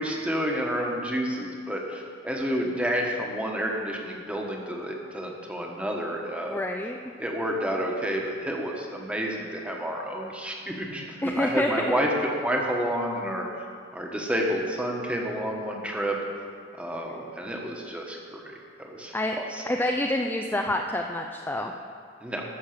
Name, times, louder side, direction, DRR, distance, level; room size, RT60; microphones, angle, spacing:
voice 1, 0.0-6.7 7.2-13.5 13.9-16.2 16.8-19.6 22.2-22.4, equal, 5° right, 0 dB, 1.3 m, -30 dB
voice 2, 6.5-7.0 11.2-11.7 19.1-19.4 19.7-21.7, left 1 dB, 10° left, 2 dB, 0.4 m, -27 dB
13.5 x 6.4 x 6.6 m, 2.2 s
head